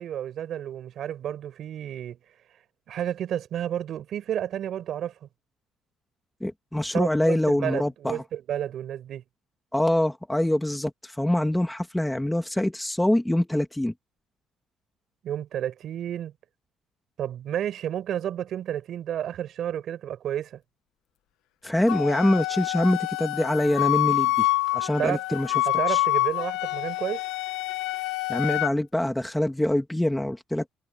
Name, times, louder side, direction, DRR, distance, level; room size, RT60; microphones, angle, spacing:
voice 1, 0.0-2.2 2.9-5.3 6.9-9.2 15.2-16.3 17.2-20.6 25.0-25.2 25.7-27.2, right 10 dB, 50° right, 5.3 m, -31 dB
voice 2, 6.4-8.2 9.7-13.9 21.6-25.5 25.9-26.0 28.3-30.7, left 1 dB, 5° left, 1.9 m, -25 dB
Wind instrument woodwind instrument, 21.9-28.7, left 18 dB, 85° left, 1.5 m, -26 dB
cardioid pair, 145°, 0 cm